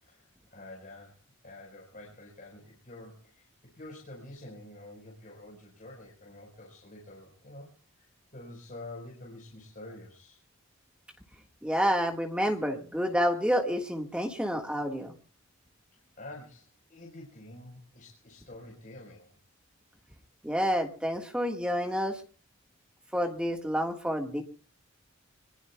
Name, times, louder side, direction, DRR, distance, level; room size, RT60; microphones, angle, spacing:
voice 1, 0.0-1.2 1.4-3.5 3.7-8.0 8.3-10.4 16.2-19.3, left 2 dB, 40° left, -3 dB, 4.5 m, -48 dB
voice 2, 11.6-15.2 20.4-22.2 23.1-24.4, equal, 5° right, 3 dB, 1.6 m, -29 dB
25.5 x 21.0 x 2.3 m, 0.39 s
head